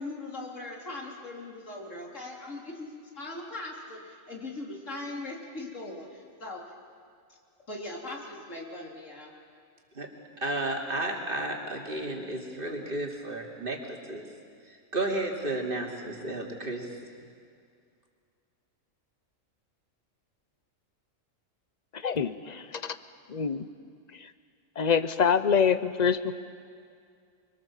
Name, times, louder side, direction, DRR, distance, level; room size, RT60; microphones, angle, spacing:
voice 1, 0.0-6.6 7.7-9.3, left 2 dB, 65° left, -1 dB, 3.8 m, -40 dB
voice 2, 10.4-14.2 14.9-16.9, right 2 dB, 40° right, 0 dB, 3.0 m, -32 dB
voice 3, 21.9-23.0 23.3-23.6 24.2-24.3 24.8-26.3, left 6 dB, 40° left, 12 dB, 0.8 m, -26 dB
25.0 x 24.5 x 7.4 m, 2.3 s
omnidirectional pair, 1.4 m